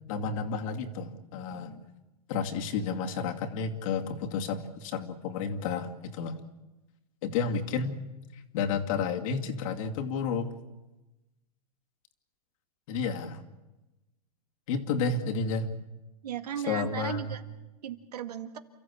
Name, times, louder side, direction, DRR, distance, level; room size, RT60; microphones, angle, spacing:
voice 1, 0.1-1.8 2.3-6.4 7.2-8.0 8.3-10.5 12.9-13.4 14.7-15.7 16.7-17.3, left 5 dB, 55° left, 4 dB, 2.4 m, -31 dB
voice 2, 16.2-17.4 17.8-18.6, right 9 dB, 85° right, 9 dB, 1.9 m, -36 dB
29.0 x 14.0 x 8.5 m, 1.1 s
hypercardioid pair, 125°, 20 cm